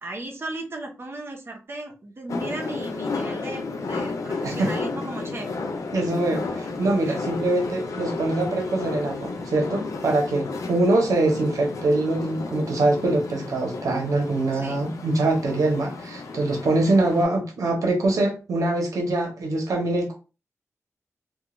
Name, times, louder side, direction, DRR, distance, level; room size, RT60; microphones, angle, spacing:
voice 1, 0.0-5.5 7.1-7.2 14.5-14.8, right 2 dB, 45° right, 0.8 m, -36 dB
sound 1, 2.3-17.2, left 3 dB, 80° left, 0.4 m, -33 dB
voice 2, 5.9-20.1, right 2 dB, 90° right, 0.8 m, -23 dB
2.3 x 2.3 x 2.9 m
wide cardioid pair, 75°, 6 cm